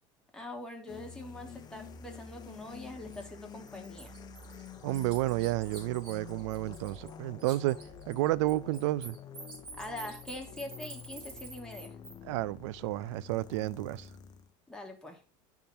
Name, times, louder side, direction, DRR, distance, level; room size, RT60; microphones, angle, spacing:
voice 1, 0.3-4.1 9.7-11.9 14.7-15.2, left 1 dB, 5° left, 1.5 m, -43 dB
sound 1, 0.9-14.5, left 6 dB, 25° left, 0.7 m, -48 dB
Bird, 3.1-3.2 3.7-7.1 7.4-12.1, right 3 dB, 35° right, 3.3 m, -48 dB
voice 2, 4.8-7.8 8.1-9.2 12.2-14.1, right 17 dB, 90° right, 0.4 m, -31 dB
10.5 x 3.7 x 4.3 m
supercardioid pair, 135°, 15 cm